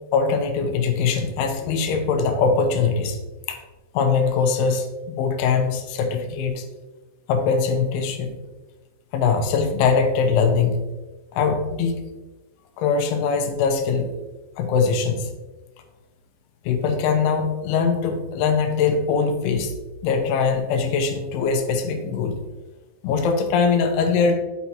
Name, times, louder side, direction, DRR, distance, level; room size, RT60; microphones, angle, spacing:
voice 1, 0.1-3.2 3.5-3.6 3.9-6.7 7.3-8.4 9.1-10.8 11.3-12.0 12.8-14.1 14.6-15.3 16.7-19.7 20.0-22.4 23.0-24.4, left 5 dB, 90° left, 5 dB, 2.8 m, -22 dB
6.8 x 6.0 x 2.8 m, 1.2 s
omnidirectional pair, 4.5 m